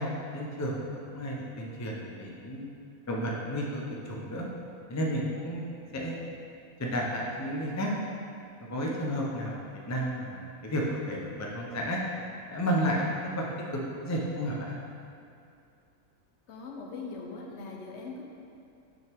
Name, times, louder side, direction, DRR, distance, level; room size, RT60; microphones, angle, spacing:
voice 1, 0.0-2.7 3.1-4.5 4.9-6.2 6.8-7.9 8.7-12.0 12.5-13.1 13.4-14.7, equal, 25° left, -2 dB, 0.4 m, -32 dB
voice 2, 16.5-18.2, left 3 dB, 60° left, 0 dB, 0.9 m, -40 dB
6.3 x 6.1 x 3.5 m, 2.5 s
omnidirectional pair, 1.4 m